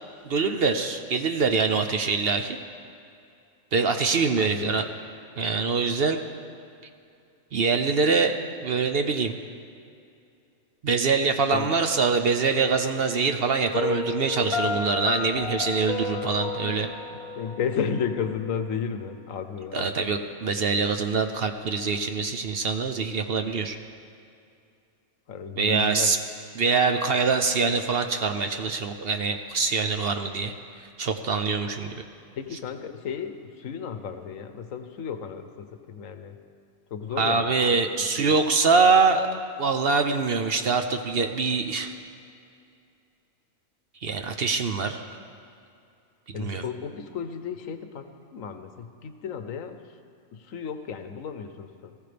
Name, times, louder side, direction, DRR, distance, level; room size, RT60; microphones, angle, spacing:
voice 1, 0.2-2.6 3.7-4.9 5.4-6.2 7.5-9.3 10.8-16.9 19.7-23.8 25.6-26.2 26.6-32.0 37.2-41.9 44.0-45.0 46.4-46.6, right 4 dB, 55° right, 6 dB, 0.8 m, -24 dB
voice 2, 4.4-4.9 11.5-11.7 16.6-20.1 25.3-26.2 32.4-36.4 36.9-37.8 38.2-38.4 46.3-49.9 50.3-51.9, left 6 dB, 70° left, 8 dB, 1.2 m, -33 dB
Piano, 13.7-18.7, left 5 dB, 85° left, 1.5 m, -32 dB
19.0 x 15.0 x 3.4 m, 2.5 s
omnidirectional pair, 1.5 m